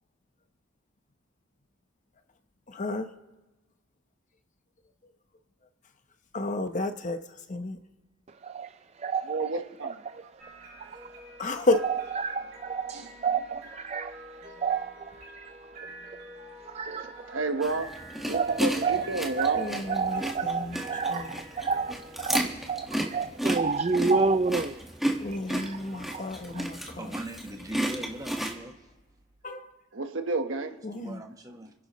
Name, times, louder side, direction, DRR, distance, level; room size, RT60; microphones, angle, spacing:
voice 1, 2.7-3.1 6.3-7.2 7.5-7.8 11.4-11.8 19.5-20.8 21.1-21.3 25.2-27.1 29.4-29.7 30.8-31.2, left 2 dB, 40° left, 0.9 m, -31 dB
voice 2, 8.4-9.5 9.8-10.2 10.8-11.1 11.8-16.2 16.6-17.4 18.3-19.0 19.4-24.8 25.3-26.6, right 5 dB, 35° right, 0.4 m, -30 dB
voice 3, 9.3-9.9 10.8-10.9 12.9-13.1 17.3-17.9 18.2-19.6 29.9-30.8, right 3 dB, 80° right, 1.3 m, -31 dB
sound 1, 10.4-29.4, right 1 dB, 50° right, 6.1 m, -48 dB
sound 2, 17.6-28.6, right 1 dB, ahead, 1.6 m, -33 dB
voice 4, 26.8-28.7 30.9-31.7, right 1 dB, 20° right, 1.2 m, -40 dB
29.5 x 11.0 x 3.1 m
head